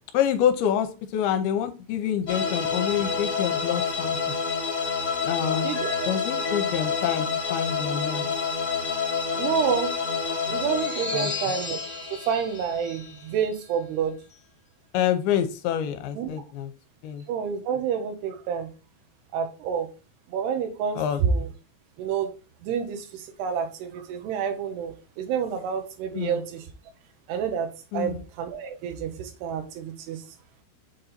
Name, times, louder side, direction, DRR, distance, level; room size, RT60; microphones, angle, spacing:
voice 1, 0.1-4.2 5.2-5.7 6.1-8.3 11.1-11.3 14.9-16.7 17.0-17.2 21.0-21.2 26.1-26.4 27.9-28.2, left 9 dB, 85° left, 8 dB, 2.6 m, -27 dB
sound 1, 2.3-13.7, left 5 dB, 50° left, 0.8 m, -28 dB
voice 2, 5.6-6.1 9.3-9.9 10.5-11.8 12.1-14.2 16.1-16.3 17.3-18.7 19.3-19.9 20.3-21.5 22.0-22.3 22.6-26.7 27.3-30.2, right 7 dB, 90° right, 5 dB, 3.1 m, -28 dB
7.3 x 3.9 x 4.2 m, 0.33 s
omnidirectional pair, 4.6 m